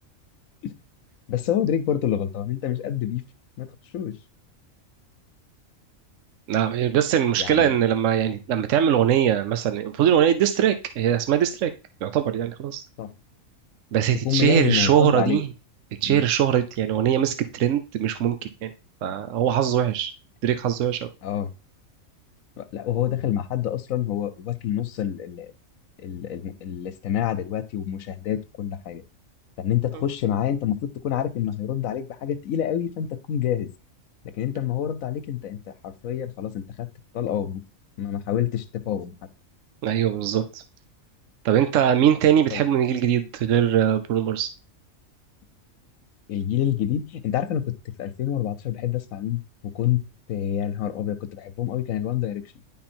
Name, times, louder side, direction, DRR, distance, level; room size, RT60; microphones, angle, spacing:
voice 1, 1.3-3.2 3.6-4.1 7.4-7.8 13.0-13.1 14.2-15.4 16.0-16.2 21.2-21.5 22.6-25.5 26.0-29.0 29.6-33.7 34.2-36.9 37.1-37.6 38.0-39.1 42.5-42.6 46.3-47.7 48.0-49.4 49.7-50.0 50.3-52.4, left 10 dB, 80° left, 13 dB, 1.2 m, -27 dB
voice 2, 6.5-11.7 12.0-12.8 13.9-15.5 16.0-18.7 19.0-20.1 20.4-21.0 39.8-40.6 41.4-44.5, right 10 dB, 70° right, 9 dB, 1.0 m, -21 dB
10.5 x 3.8 x 4.3 m, 0.31 s
omnidirectional pair, 1.4 m